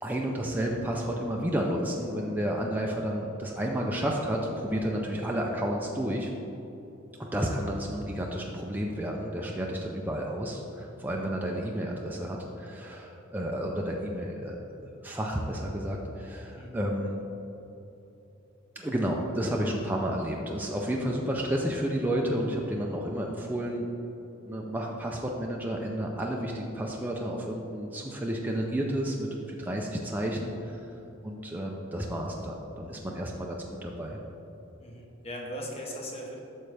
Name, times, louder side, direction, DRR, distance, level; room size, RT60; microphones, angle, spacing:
voice 1, 0.0-6.3 7.2-17.2 18.8-23.9 24.5-30.8 31.2-34.2, equal, 10° right, -1 dB, 0.5 m, -31 dB
voice 2, 34.8-36.4, equal, 30° left, -1 dB, 1.1 m, -39 dB
8.5 x 6.4 x 3.4 m, 3.0 s
head